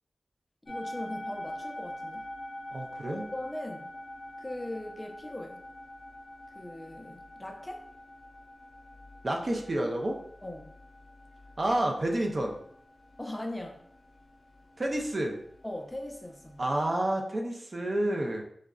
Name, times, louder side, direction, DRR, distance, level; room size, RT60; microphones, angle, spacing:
voice 1, 0.6-2.3 3.0-3.9 4.4-5.7 6.5-7.9 10.4-10.7 13.2-13.8 15.6-16.6, left 1 dB, 15° left, 3 dB, 0.4 m, -40 dB
sound 1, 0.7-16.8, left 1 dB, 50° left, 0.7 m, -45 dB
voice 2, 2.7-3.3 9.2-10.2 11.6-12.5 14.8-15.4 16.6-18.4, right 1 dB, 45° right, 1 dB, 0.5 m, -29 dB
3.6 x 2.1 x 2.3 m, 0.67 s
wide cardioid pair, 70°, 0 cm